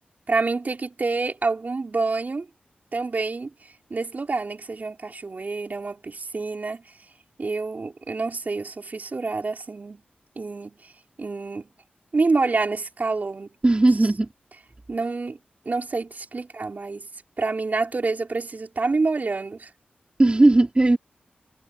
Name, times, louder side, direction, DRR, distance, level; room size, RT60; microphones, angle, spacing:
voice 1, 0.3-2.5 2.9-3.5 3.9-6.8 7.4-10.0 10.3-10.8 11.2-11.7 12.1-13.5 14.9-15.4 15.6-17.1 17.4-19.7, right 3 dB, 50° right, 5.0 m, -27 dB
voice 2, 13.6-14.3 20.2-21.0, right 2 dB, 25° right, 4.6 m, -17 dB
cardioid pair, 60°, 4 cm